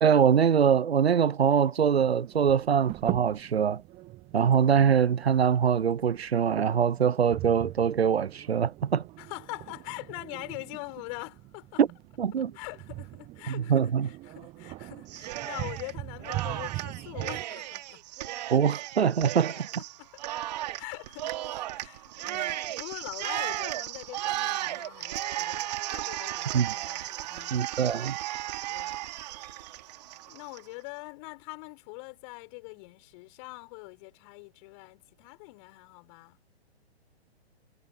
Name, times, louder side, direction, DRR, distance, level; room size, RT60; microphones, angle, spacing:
voice 1, 0.0-3.8 4.3-9.0 11.8-11.9 12.2-12.5 13.5-14.1 18.5-19.5 26.5-26.7 27.5-28.2, right 7 dB, 70° right, 0.6 m, -23 dB
sound 1, 2.0-17.4, right 18 dB, 20° right, 1.3 m, -41 dB
voice 2, 9.2-11.8 12.3-18.0 19.5-20.5 20.8-27.7 28.7-29.3 30.3-36.4, left 29 dB, 30° left, 6.3 m, -43 dB
Cheering, 15.1-15.9 16.2-30.6, right 14 dB, 40° right, 2.6 m, -35 dB
figure-of-eight pair, 120°, 32 cm